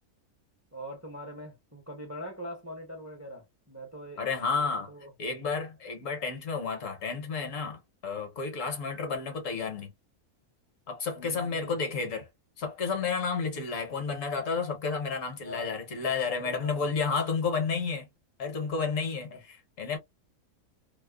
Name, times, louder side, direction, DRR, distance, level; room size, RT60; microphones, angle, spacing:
voice 1, 0.7-4.2 4.5-5.4 11.2-11.7 15.4-15.8 16.3-16.9 19.3-19.4, equal, 20° right, 0.5 m, -43 dB
voice 2, 4.2-4.9 5.2-9.9 10.9-12.3 12.6-18.1 18.4-20.0, left 5 dB, 65° left, 1.1 m, -31 dB
2.8 x 2.0 x 2.2 m
omnidirectional pair, 1.6 m